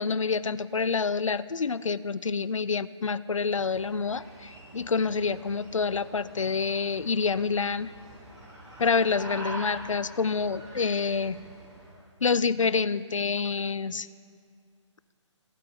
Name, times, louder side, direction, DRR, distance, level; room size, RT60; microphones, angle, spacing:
voice 1, 0.0-7.9 8.8-11.4 12.2-14.1, left 5 dB, 85° left, 16 dB, 0.6 m, -27 dB
sound 1, 3.4-12.0, right 1 dB, 20° right, 4.0 m, -45 dB
15.5 x 9.2 x 8.5 m, 2.1 s
figure-of-eight pair, 140°, 16 cm